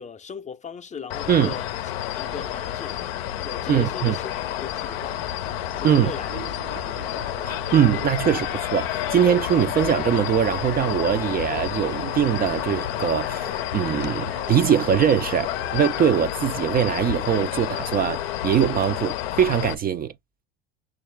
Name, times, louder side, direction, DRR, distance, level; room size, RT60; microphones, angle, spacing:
voice 1, 0.0-1.7 2.1-3.0 3.4-4.3 4.6-5.2 5.8-6.5 6.8-7.1, left 6 dB, 25° left, 0.6 m, -37 dB
sound 1, 1.1-19.7, left 12 dB, 75° left, 0.5 m, -30 dB
sound 2, 2.2-16.7, right 9 dB, 65° right, 0.8 m, -43 dB
voice 2, 3.7-4.2 5.8-6.1 7.5-20.1, right 9 dB, 30° right, 0.4 m, -22 dB
6.1 x 2.5 x 3.0 m
hypercardioid pair, 75°, 30 cm